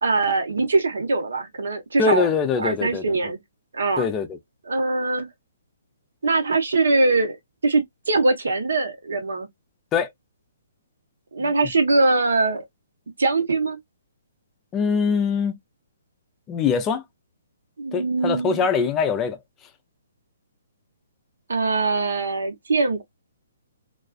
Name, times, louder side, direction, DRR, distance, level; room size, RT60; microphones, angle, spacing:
voice 1, 0.0-2.3 2.6-3.4 3.7-4.1 4.7-5.3 6.2-7.4 7.6-9.5 11.3-12.6 13.2-13.8 17.8-18.7 21.5-23.0, right 3 dB, 85° right, 0.9 m, -22 dB
voice 2, 2.0-3.3 4.0-4.4 9.9-10.1 14.7-15.6 16.5-17.0 17.9-19.4, left 5 dB, 20° left, 0.4 m, -23 dB
2.4 x 2.3 x 2.2 m
hypercardioid pair, 155°, 0 cm